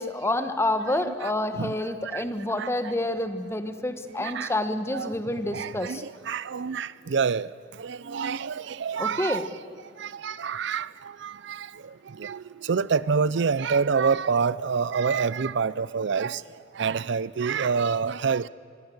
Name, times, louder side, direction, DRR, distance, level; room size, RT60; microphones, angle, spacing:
voice 1, 0.0-6.0 9.0-9.4, left 1 dB, 15° left, 9 dB, 1.3 m, -28 dB
voice 2, 0.9-2.2 2.6-2.9 4.2-4.6 4.9-7.5 7.8-9.5 10.0-16.4 16.7-18.5, right 5 dB, 65° right, 19 dB, 0.5 m, -28 dB
25.5 x 22.0 x 8.0 m, 2.6 s
head